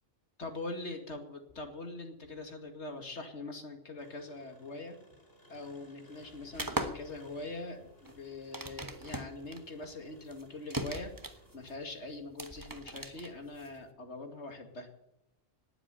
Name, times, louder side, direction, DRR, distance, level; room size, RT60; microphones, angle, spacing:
voice 1, 0.4-5.0 5.5-14.9, left 2 dB, 70° left, 5 dB, 2.6 m, -43 dB
Engine, 4.0-12.1, left 1 dB, 55° left, 5.1 m, -60 dB
gamepad video game controller, 6.5-13.9, right 1 dB, 20° right, 1.1 m, -40 dB
19.0 x 7.9 x 9.0 m, 0.88 s
omnidirectional pair, 1.2 m